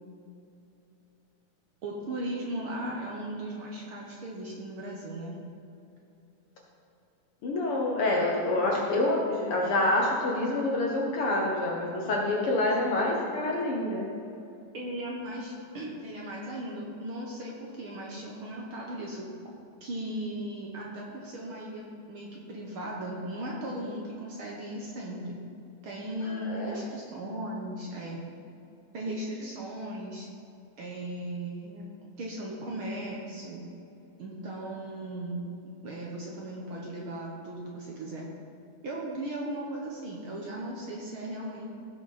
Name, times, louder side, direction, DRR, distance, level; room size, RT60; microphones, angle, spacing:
voice 1, 1.8-5.4 14.7-19.3 19.8-25.4 25.8-28.2 28.9-30.3 30.8-31.9 32.2-33.7 34.2-38.3 38.8-41.7, right 1 dB, 55° right, -3 dB, 1.6 m, -37 dB
voice 2, 7.4-14.1 26.2-26.8 29.1-29.2, left 2 dB, 60° left, -1 dB, 1.7 m, -27 dB
16.0 x 6.1 x 4.2 m, 2.7 s
omnidirectional pair, 3.4 m